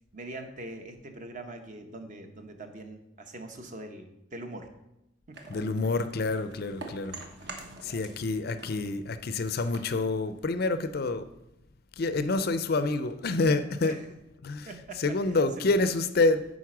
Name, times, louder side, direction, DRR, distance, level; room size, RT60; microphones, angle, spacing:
voice 1, 0.1-4.7 5.3-5.6 7.8-8.1 13.8-14.1 14.6-15.7, right 2 dB, 40° right, 6 dB, 0.8 m, -43 dB
sound 1, 5.3-8.3 8.5-10.9, right 3 dB, 55° right, 1.1 m, -46 dB
voice 2, 5.5-7.2 7.8-11.2 12.0-13.9 14.4-14.7 15.0-16.5, left 3 dB, 50° left, 11 dB, 0.4 m, -27 dB
9.3 x 4.1 x 6.0 m, 0.87 s
head